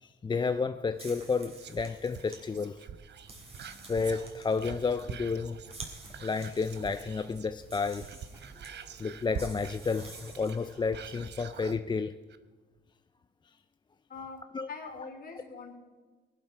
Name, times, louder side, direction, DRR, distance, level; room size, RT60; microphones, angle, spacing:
voice 1, 0.0-2.8 3.9-5.6 6.2-8.1 9.0-12.1 14.5-14.7, left 4 dB, 25° left, 9 dB, 0.4 m, -31 dB
sound 1, 0.9-10.8, right 2 dB, 30° right, 3.1 m, -51 dB
Whispering, 1.6-7.6 7.9-11.8 12.3-12.4, right 7 dB, 60° right, 0.9 m, -45 dB
sound 2, 3.3-5.8 6.0-8.0 8.3-11.8, right 1 dB, 10° right, 2.6 m, -56 dB
voice 2, 14.1-15.8, left 4 dB, 50° left, 1 dB, 3.3 m, -43 dB
18.5 x 11.0 x 4.6 m, 1.4 s
cardioid pair, 90°, 20 cm